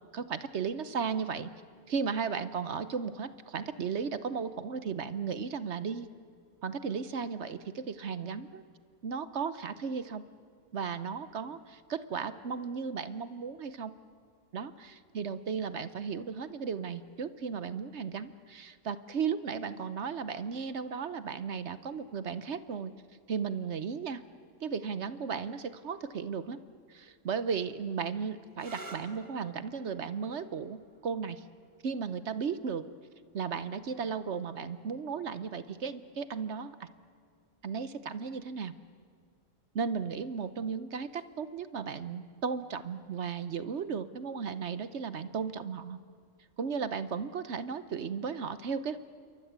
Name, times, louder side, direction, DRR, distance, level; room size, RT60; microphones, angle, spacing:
voice 1, 0.1-1.5 1.9-6.1 6.6-8.6 9.0-10.2 10.7-13.9 14.5-22.9 23.3-24.2 24.6-26.6 26.9-31.4 31.8-32.9 33.3-36.9 37.6-38.7 39.7-46.0 46.6-49.0, right 6 dB, 55° right, 13 dB, 1.1 m, -35 dB
sound 1, 28.5-36.0 37.0-37.5 41.0-41.3, right 2 dB, 35° right, 2.5 m, -54 dB
27.5 x 23.0 x 8.1 m, 2.1 s
omnidirectional pair, 1.5 m